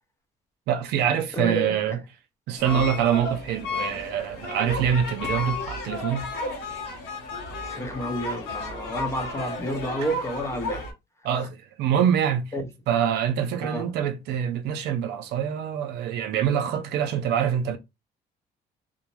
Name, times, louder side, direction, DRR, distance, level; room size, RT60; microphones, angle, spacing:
voice 1, 0.7-2.0 2.5-6.3 11.2-12.5 12.9-17.8, right 9 dB, 80° right, 0.6 m, -25 dB
voice 2, 1.3-2.0 2.7-2.9 7.5-10.9 11.3-11.5 12.5-12.7 13.6-13.9, right 1 dB, 15° left, 0.6 m, -30 dB
sound 1, 2.6-10.9, left 2 dB, 90° left, 0.9 m, -33 dB
2.5 x 2.1 x 3.0 m
cardioid pair, 110°, 17 cm